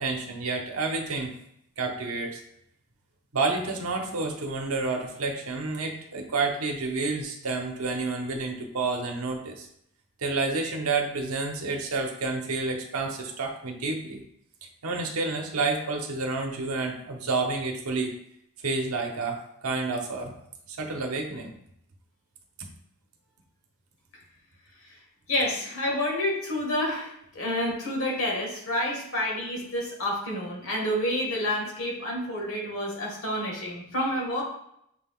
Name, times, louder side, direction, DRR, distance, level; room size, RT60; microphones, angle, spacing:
voice 1, 0.0-1.3 1.8-2.4 3.3-9.7 10.2-14.2 14.8-18.1 18.6-20.3 20.7-21.5, right 3 dB, 70° right, 3 dB, 0.8 m, -29 dB
voice 2, 25.3-34.4, left 1 dB, 65° left, -2 dB, 1.5 m, -29 dB
6.5 x 2.3 x 3.6 m, 0.73 s
head